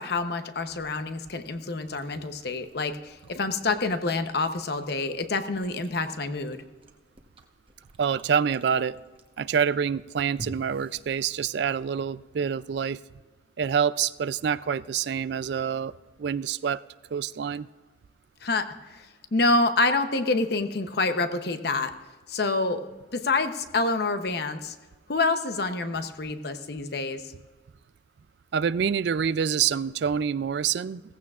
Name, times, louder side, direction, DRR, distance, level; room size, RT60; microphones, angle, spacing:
voice 1, 0.0-6.6 18.4-19.1 19.3-21.9 22.3-22.8 23.1-24.7 25.1-27.2, left 3 dB, 55° left, 9 dB, 0.8 m, -27 dB
Chewing mastication, 1.7-11.9, equal, 25° right, 1.0 m, -51 dB
voice 2, 8.0-9.0 9.4-13.0 13.6-15.9 16.2-16.8 17.1-17.7 28.5-31.0, right 7 dB, 60° right, 17 dB, 0.3 m, -26 dB
17.0 x 15.0 x 2.4 m, 1.3 s
head